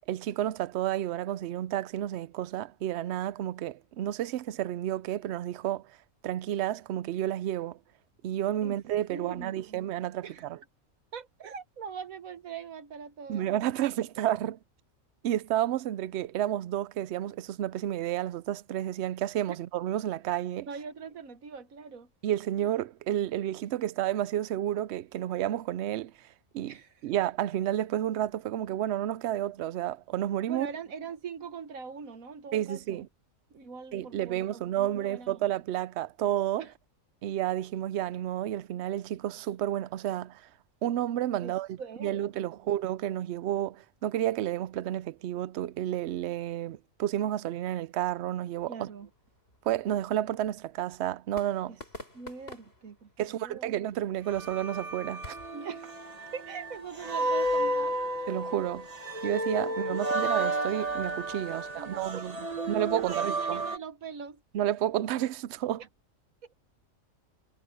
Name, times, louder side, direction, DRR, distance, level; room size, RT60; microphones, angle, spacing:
voice 1, 0.0-5.9 6.2-7.8 8.2-10.6 13.3-14.6 15.2-20.7 22.2-26.3 26.5-26.8 27.0-30.7 32.5-33.1 33.9-36.7 37.2-40.5 40.8-48.9 49.6-51.7 53.2-55.4 58.3-58.9 59.2-62.4 62.7-63.6 64.5-65.8, right 12 dB, 65° right, 0.8 m, -31 dB
voice 2, 9.1-9.9 10.2-10.5 11.1-13.5 19.5-19.6 20.7-22.1 26.7-26.9 30.5-33.0 33.5-35.5 36.6-36.7 41.4-41.5 41.8-42.7 48.7-49.1 51.7-51.8 52.1-53.7 55.5-55.9 56.3-58.3 59.6-60.0 61.5-62.2 62.6-64.4, right 6 dB, 85° right, 1.7 m, -42 dB
sound 1, 48.5-55.6, left 1 dB, 45° left, 6.3 m, -51 dB
sound 2, 54.3-63.8, right 1 dB, 30° right, 1.6 m, -32 dB
omnidirectional pair, 1.4 m